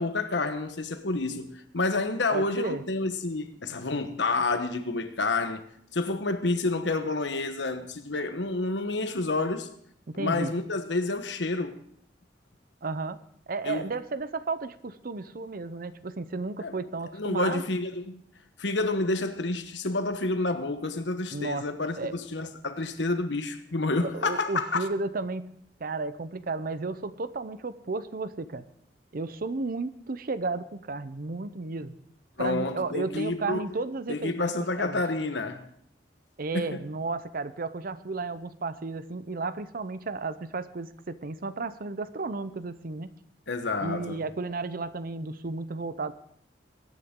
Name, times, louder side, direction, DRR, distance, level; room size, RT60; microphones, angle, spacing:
voice 1, 0.0-5.6 5.9-9.7 10.1-11.8 13.6-13.9 16.6-16.7 17.1-18.2 18.6-24.9 32.4-33.6 34.1-35.6 36.5-36.8 43.5-44.2, left 3 dB, 90° left, 1.2 m, -29 dB
voice 2, 2.3-2.8 10.1-10.5 12.8-13.2 13.5-17.6 21.3-21.6 22.0-22.1 24.0-25.5 25.8-28.7 29.1-32.0 32.4-35.0 36.4-43.1 43.8-46.1, right 3 dB, 55° right, 0.7 m, -33 dB
21.0 x 9.8 x 3.8 m
head